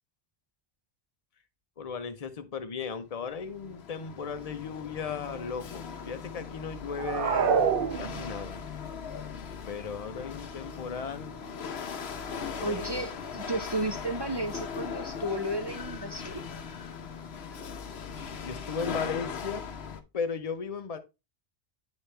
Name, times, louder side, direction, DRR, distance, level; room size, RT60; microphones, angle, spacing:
voice 1, 1.8-7.7 8.0-8.6 9.6-11.4 12.3-13.0 18.4-19.7 20.1-21.0, left 5 dB, 40° left, 0.8 m, -36 dB
Chatter / Hiss / Rattle, 3.1-20.0, left 6 dB, 75° left, 1.1 m, -39 dB
sound 1, 6.9-8.6, right 6 dB, 60° right, 0.8 m, -26 dB
voice 2, 12.6-16.4, right 1 dB, 30° right, 0.6 m, -33 dB
10.0 x 4.1 x 3.3 m
omnidirectional pair, 1.1 m